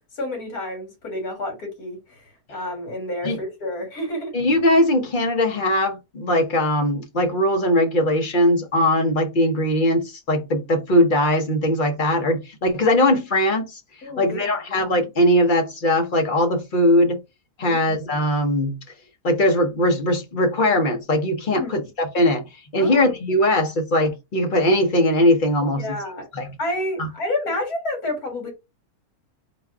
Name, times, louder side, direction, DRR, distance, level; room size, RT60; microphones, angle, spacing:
voice 1, 0.2-2.2 2.5-4.4 14.0-14.8 17.6-17.8 21.5-21.7 22.8-23.0 25.7-26.2 26.6-28.5, left 1 dB, 75° left, 2.3 m, -29 dB
voice 2, 4.3-13.8 14.2-17.2 17.6-18.8 19.2-22.4 22.7-26.0 26.3-26.5 27.0-27.1, left 1 dB, 40° left, 0.8 m, -20 dB
3.9 x 2.4 x 4.5 m
omnidirectional pair, 1.6 m